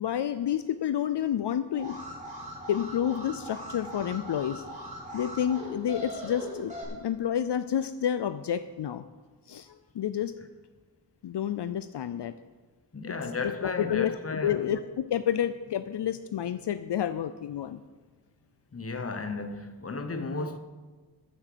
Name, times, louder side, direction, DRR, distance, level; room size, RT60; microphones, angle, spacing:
voice 1, 0.0-2.0 2.7-4.6 5.1-9.0 9.5-10.3 11.2-12.3 13.1-17.8, left 9 dB, 70° left, 0.5 m, -30 dB
Alarm, 1.7-6.8, equal, 15° right, 3.5 m, -40 dB
voice 2, 12.9-14.7 18.7-20.6, left 3 dB, 35° left, 1.0 m, -34 dB
9.7 x 9.1 x 6.8 m
wide cardioid pair, 90°, 43 cm